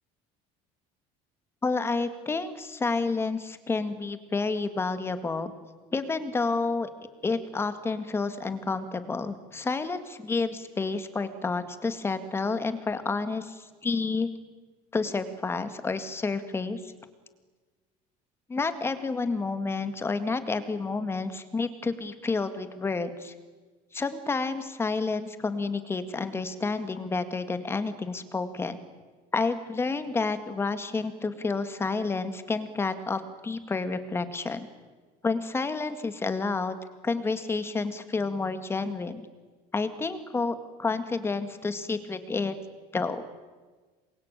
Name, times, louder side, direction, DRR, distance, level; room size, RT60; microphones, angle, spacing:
voice 1, 1.6-5.5 5.9-6.9 7.2-14.3 14.9-16.9 18.5-23.3 23.9-28.8 29.3-34.7 35.2-36.8 37.0-39.2 39.7-42.6 42.9-43.2, left 4 dB, 15° left, 10 dB, 2.0 m, -30 dB
27.5 x 23.0 x 9.1 m, 1.4 s
cardioid pair, 150°, 15 cm